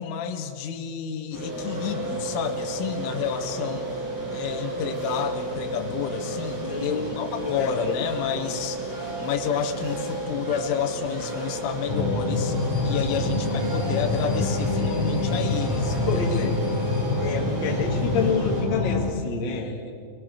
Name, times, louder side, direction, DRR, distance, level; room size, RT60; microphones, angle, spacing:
voice 1, 0.0-3.9 4.3-12.6 12.9-16.5, left 8 dB, 80° left, 3 dB, 3.8 m, -30 dB
sound 1, 1.3-18.6, right 2 dB, 80° right, 9.3 m, -33 dB
voice 2, 6.6-7.1 7.4-8.0 16.1-16.6 17.2-19.9, left 5 dB, 40° left, 0 dB, 1.7 m, -29 dB
sound 2, 11.9-19.1, left 3 dB, 5° right, 2.5 m, -26 dB
26.0 x 19.5 x 6.5 m, 2.3 s
omnidirectional pair, 5.8 m